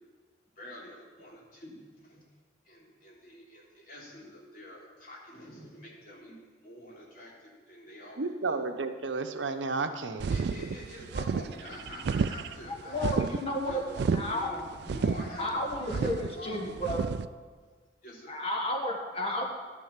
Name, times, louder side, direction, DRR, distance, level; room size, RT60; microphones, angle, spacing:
voice 1, 0.6-2.2 2.6-6.4 6.6-8.6 10.3-16.8 18.0-18.3, left 1 dB, 50° left, -4 dB, 3.3 m, -46 dB
voice 2, 8.2-10.3, right 3 dB, 80° right, 7 dB, 0.8 m, -32 dB
sound 1, 10.2-17.3, right 5 dB, 60° right, 0.3 m, -31 dB
voice 3, 12.8-13.8 14.1-14.5 15.4-17.0 18.3-19.4, left 1 dB, 30° left, 0 dB, 1.6 m, -32 dB
11.5 x 7.0 x 7.2 m, 1.4 s
head